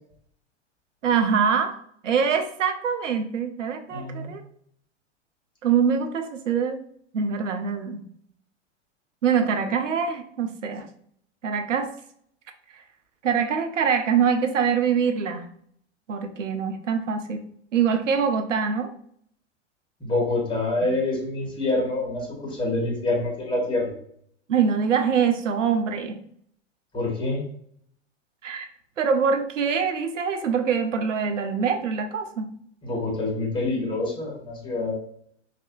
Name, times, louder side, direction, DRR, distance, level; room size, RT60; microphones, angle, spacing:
voice 1, 1.0-1.7 2.0-4.4 5.6-6.8 7.1-8.0 9.2-10.9 11.4-11.9 13.2-15.5 16.1-17.4 17.7-18.9 20.8-20.9 24.5-26.2 28.4-28.7 29.0-32.5, right 6 dB, 85° right, 6 dB, 0.6 m, -24 dB
voice 2, 3.9-4.3 20.0-23.9 26.9-27.4 32.8-34.9, left 2 dB, 15° left, -2 dB, 1.5 m, -26 dB
3.2 x 2.7 x 2.5 m, 0.64 s
hypercardioid pair, 100°, 36 cm